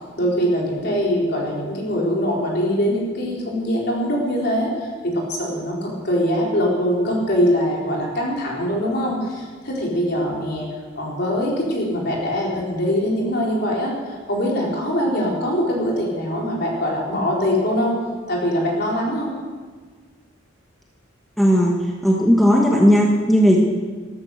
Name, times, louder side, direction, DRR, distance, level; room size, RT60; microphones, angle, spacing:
voice 1, 0.2-10.7 11.0-18.0 18.3-19.3, equal, 50° left, -3 dB, 4.1 m, -22 dB
voice 2, 21.4-21.7 22.0-23.6, equal, ahead, -2 dB, 1.4 m, -15 dB
14.0 x 13.5 x 6.5 m, 1.5 s
head